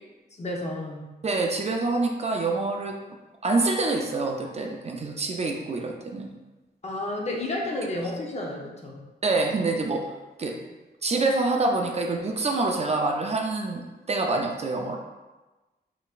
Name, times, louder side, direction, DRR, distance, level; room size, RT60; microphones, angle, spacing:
voice 1, 0.4-1.0 6.8-9.0, left 1 dB, 40° left, -1 dB, 0.7 m, -31 dB
voice 2, 1.2-3.0 3.4-6.3 9.2-10.1 10.4-10.6 11.0-15.0, right 3 dB, 35° right, 1 dB, 0.5 m, -26 dB
4.1 x 3.9 x 2.4 m, 1.1 s
wide cardioid pair, 115°, 18 cm